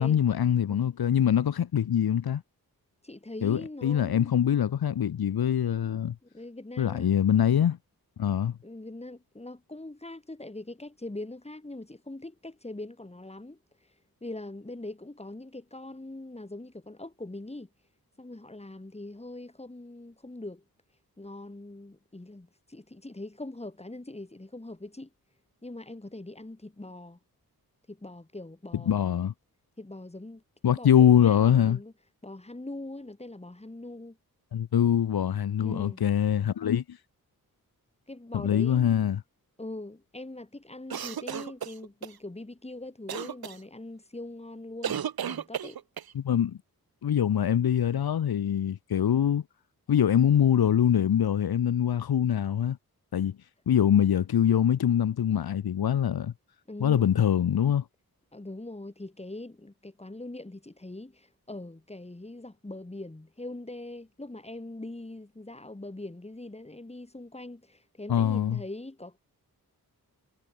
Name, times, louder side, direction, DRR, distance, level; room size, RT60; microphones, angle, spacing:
voice 1, 0.0-2.4 3.4-6.1 6.8-7.8 8.2-8.6 28.9-29.3 30.6-31.8 34.5-37.0 38.3-39.2 46.1-46.6 47.0-49.4 49.9-52.8 53.1-53.4 53.7-56.3 56.8-57.8 68.1-68.6, left 9 dB, 85° left, 0.9 m, -24 dB
voice 2, 3.0-4.3 6.2-7.1 8.6-13.6 14.2-17.7 18.2-20.6 21.2-25.1 25.6-27.2 27.9-29.3 29.8-31.9 32.2-34.2 35.6-36.0 38.1-38.9 39.6-45.8 56.7-57.1 58.3-69.2, left 2 dB, 15° left, 3.2 m, -42 dB
sound 1, 40.9-42.1 43.1-43.6 44.8-46.1, right 9 dB, 80° right, 0.9 m, -34 dB
wide cardioid pair, 90°, 36 cm